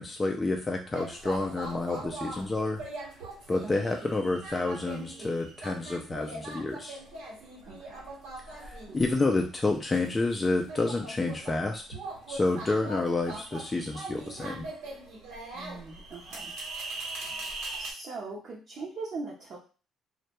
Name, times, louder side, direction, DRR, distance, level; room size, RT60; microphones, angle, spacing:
voice 1, 0.0-2.8 3.5-7.0 8.5-11.8 12.3-14.7, left 2 dB, 20° left, 2 dB, 0.3 m, -29 dB
sound 1, 0.8-17.9, right 2 dB, 90° right, 1.0 m, -41 dB
voice 2, 3.6-4.0 7.6-8.1 8.9-9.0 15.5-16.5 17.2-17.5 17.8-19.6, right 3 dB, 55° right, -4 dB, 0.6 m, -41 dB
2.1 x 2.1 x 2.9 m, 0.36 s
cardioid pair, 95°, 0 cm